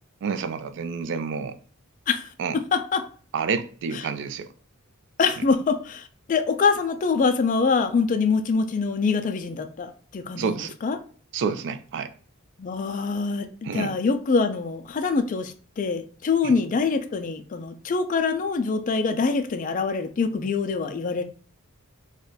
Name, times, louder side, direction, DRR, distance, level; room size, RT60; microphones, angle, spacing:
voice 1, 0.2-1.6 2.4-2.6 3.3-4.5 10.4-10.8 11.3-12.1 13.6-14.0 16.4-16.6, right 5 dB, 55° right, 0.3 m, -29 dB
voice 2, 2.7-3.0 5.2-10.6 10.8-11.0 12.6-21.2, left 4 dB, 35° left, 0.3 m, -24 dB
2.4 x 2.2 x 3.8 m
head